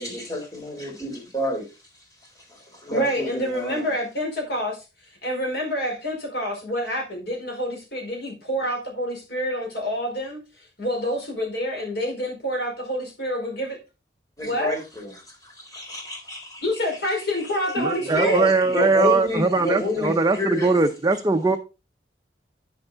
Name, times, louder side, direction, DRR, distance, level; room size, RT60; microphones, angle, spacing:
voice 1, 0.0-3.9 14.4-17.4 17.7-20.7, left 1 dB, 20° left, 3.7 m, -30 dB
voice 2, 2.9-4.8 5.2-10.4 10.8-13.8 14.4-14.7 16.6-18.4, equal, 65° left, 4.9 m, -27 dB
voice 3, 17.8-21.6, right 3 dB, 20° right, 0.6 m, -20 dB
9.7 x 6.9 x 3.9 m
head